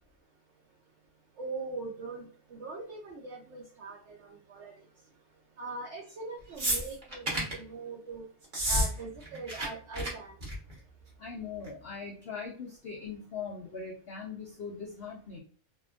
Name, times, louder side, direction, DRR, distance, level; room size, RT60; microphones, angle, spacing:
voice 1, 1.4-4.9 5.6-8.3 8.6-10.4, right 3 dB, 65° right, -2 dB, 0.7 m, -41 dB
cola-bottle, 6.6-7.6 8.4-8.9 9.2-9.7 9.9-10.1 10.4-10.7 11.7-11.8, equal, 35° right, 0.9 m, -30 dB
voice 2, 11.2-15.4, left 5 dB, 75° left, -2 dB, 0.5 m, -40 dB
2.8 x 2.5 x 2.3 m, 0.42 s
omnidirectional pair, 1.7 m